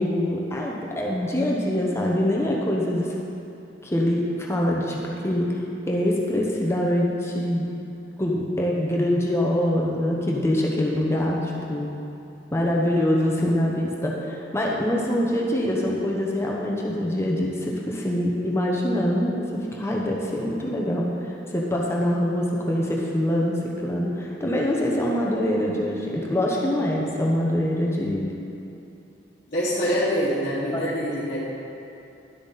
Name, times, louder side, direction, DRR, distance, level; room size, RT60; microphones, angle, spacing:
voice 1, 0.0-3.1 3.8-5.6 5.9-7.6 8.2-11.9 12.5-28.3 30.7-30.9, left 1 dB, 15° left, -3 dB, 0.9 m, -24 dB
voice 2, 29.5-31.4, equal, 45° left, -11 dB, 1.5 m, -25 dB
11.5 x 7.9 x 4.0 m, 2.8 s
head